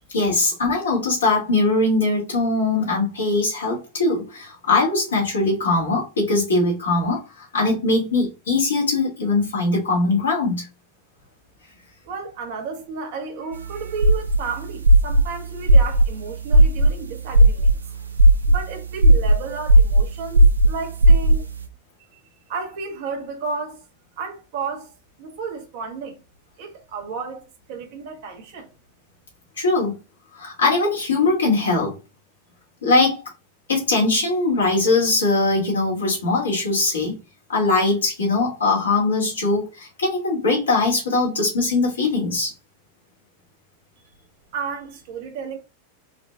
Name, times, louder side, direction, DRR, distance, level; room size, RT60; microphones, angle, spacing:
voice 1, 0.1-10.7 29.6-29.9 30.3-32.0 32.8-33.2 33.7-37.1 37.5-42.5, left 3 dB, 75° left, 2.3 m, -21 dB
voice 2, 12.0-17.8 18.5-21.5 22.1-22.2 22.5-23.9 24.2-26.2 26.6-28.7 44.5-45.6, right 5 dB, 55° right, 1.3 m, -32 dB
sound 1, 13.5-21.6, right 1 dB, 80° right, 0.6 m, -15 dB
4.8 x 3.2 x 2.4 m
figure-of-eight pair, 90°, 0 cm